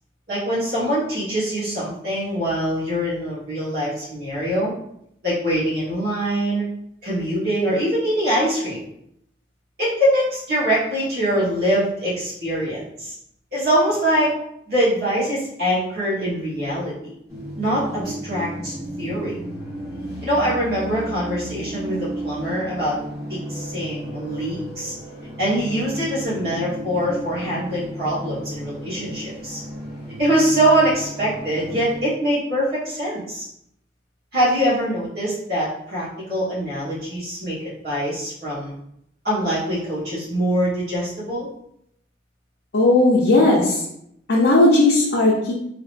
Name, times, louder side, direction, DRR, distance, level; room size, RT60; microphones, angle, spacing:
voice 1, 0.3-4.7 5.2-6.6 7.0-8.8 9.8-13.1 13.5-14.4 14.7-17.1 17.6-19.3 20.2-23.0 23.3-24.9 25.4-29.6 30.2-33.4 34.3-37.5 37.8-38.7 39.2-41.5, right 1 dB, 55° right, -9 dB, 1.3 m, -23 dB
sound 1, 17.3-32.0, right 1 dB, 15° right, 1.4 m, -34 dB
voice 2, 42.7-43.8 44.3-45.5, left 2 dB, 70° left, -5 dB, 0.6 m, -16 dB
3.5 x 2.8 x 2.5 m, 0.75 s
head